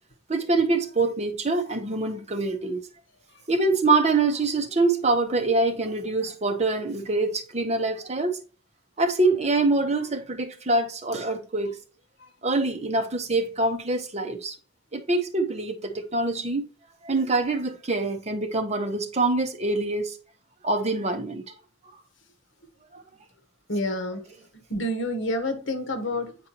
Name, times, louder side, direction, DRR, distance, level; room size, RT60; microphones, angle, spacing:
voice 1, 0.3-2.8 3.5-8.4 9.0-11.8 12.4-14.5 14.9-16.7 17.0-20.2 20.6-21.5, right 3 dB, 35° right, 1.0 m, -25 dB
voice 2, 23.7-24.2 24.7-26.5, left 1 dB, 80° left, 1.3 m, -28 dB
9.0 x 4.6 x 3.0 m
head